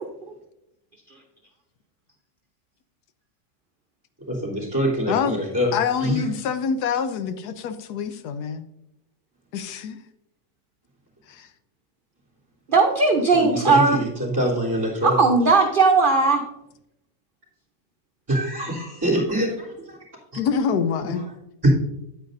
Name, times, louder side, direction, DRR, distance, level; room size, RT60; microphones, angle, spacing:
voice 1, 4.3-5.7 6.0-6.3 13.3-15.2 18.3-20.0 21.1-21.2 21.6-21.7, equal, 15° right, -4 dB, 3.2 m, -24 dB
voice 2, 5.7-8.7 9.5-10.0 11.3-11.5 20.3-21.3, left 6 dB, 85° left, 10 dB, 1.2 m, -26 dB
voice 3, 12.7-14.0 15.0-16.4, right 4 dB, 45° right, 2 dB, 0.8 m, -17 dB
9.5 x 9.1 x 2.6 m, 0.84 s
omnidirectional pair, 1.7 m